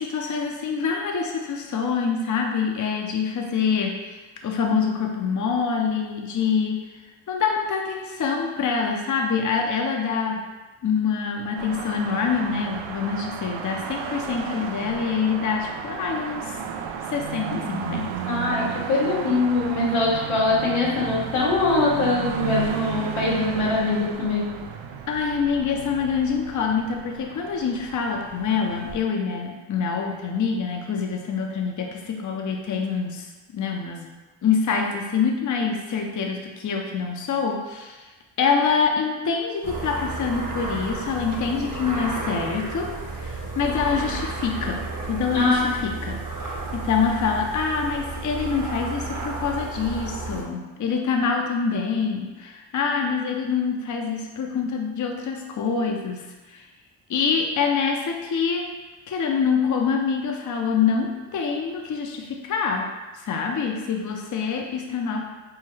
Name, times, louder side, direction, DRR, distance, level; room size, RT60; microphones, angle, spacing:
voice 1, 0.0-6.9 7.3-10.5 10.8-16.6 17.1-18.2 25.1-33.3 33.5-34.1 34.4-38.1 38.4-42.9 43.2-56.6 57.1-58.7 59.1-62.9 63.2-65.2, left 5 dB, 40° left, 2 dB, 0.6 m, -25 dB
sound 1, 11.6-29.0, right 7 dB, 70° right, 0.5 m, -34 dB
voice 2, 18.3-24.5 45.3-45.7, left 2 dB, 90° left, -5 dB, 1.2 m, -22 dB
sound 2, 39.6-50.4, right 3 dB, 40° right, 1.0 m, -32 dB
5.5 x 2.1 x 3.2 m, 1.2 s
cardioid pair, 55°, 48 cm